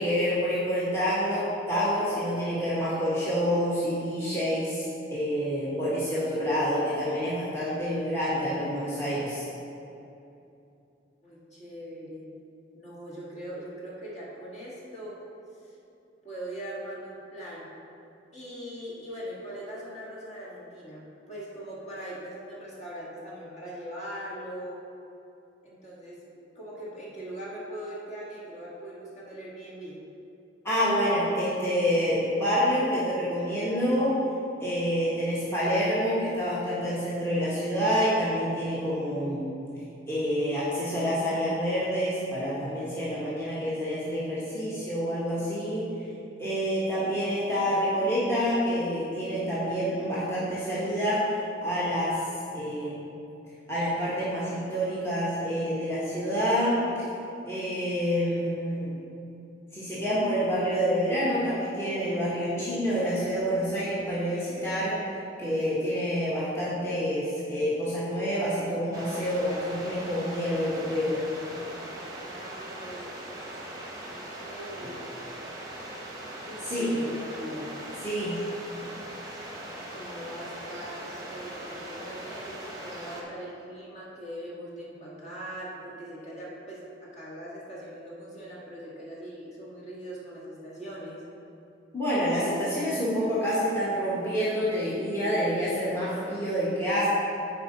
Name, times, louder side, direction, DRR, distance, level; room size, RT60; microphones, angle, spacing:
voice 1, 0.0-9.4 30.6-34.2 34.6-39.5 40.1-45.9 46.4-52.2 52.5-53.2 53.7-56.8 57.4-58.9 59.7-65.0 65.4-71.2 74.8-74.9 76.7-76.9 78.0-78.4 91.9-97.1, equal, 15° left, -10 dB, 1.3 m, -27 dB
voice 2, 11.2-12.2 12.7-15.2 15.6-15.7 16.2-17.7 18.3-24.8 25.6-26.2 26.5-30.0 72.2-73.1 74.1-75.1 76.4-77.8 79.9-91.2, right 1 dB, 40° left, -6 dB, 1.7 m, -41 dB
sound 1, 68.9-83.2, right 1 dB, 20° right, 1.0 m, -40 dB
9.0 x 4.7 x 4.0 m, 2.8 s
head